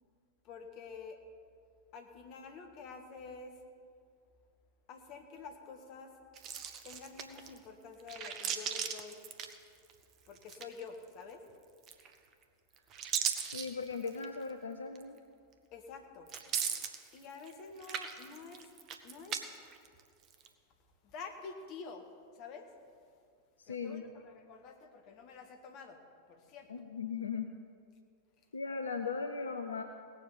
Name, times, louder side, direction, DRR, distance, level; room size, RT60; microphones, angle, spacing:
voice 1, 0.4-1.2 1.9-3.6 4.9-6.1 6.8-9.2 10.3-11.4 15.7-16.3 17.1-18.7 19.0-19.5 21.0-22.0 22.3-22.7 23.7-26.0 26.3-26.7, left 5 dB, 40° left, 4 dB, 1.7 m, -48 dB
sound 1, 6.3-7.6 8.0-10.0 10.3-11.0 11.8-12.3 12.7-14.3 14.9-15.0 16.3-17.5 17.8-19.4 19.7-20.5, right 8 dB, 35° right, 1.1 m, -38 dB
voice 2, 13.5-15.2 23.6-24.0 26.7-27.5 28.5-29.8, left 5 dB, 70° left, 6 dB, 0.7 m, -38 dB
18.0 x 7.3 x 7.2 m, 2.2 s
figure-of-eight pair, 90°, 0 cm